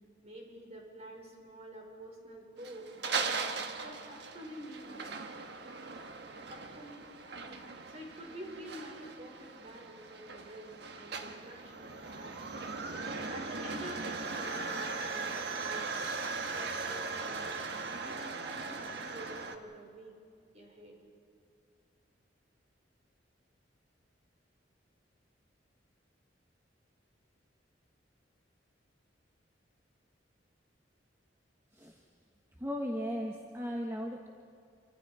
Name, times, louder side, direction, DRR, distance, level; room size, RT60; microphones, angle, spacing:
voice 1, 0.2-3.4 3.8-5.1 6.5-7.1 7.3-15.9 16.5-20.1 20.5-21.0, right 1 dB, 35° right, 0 dB, 5.0 m, -48 dB
sound 1, 2.6-19.6, right 4 dB, 65° right, 1.4 m, -39 dB
voice 2, 32.6-34.3, equal, 15° right, 1 dB, 1.2 m, -36 dB
27.5 x 25.0 x 4.9 m, 2.3 s
head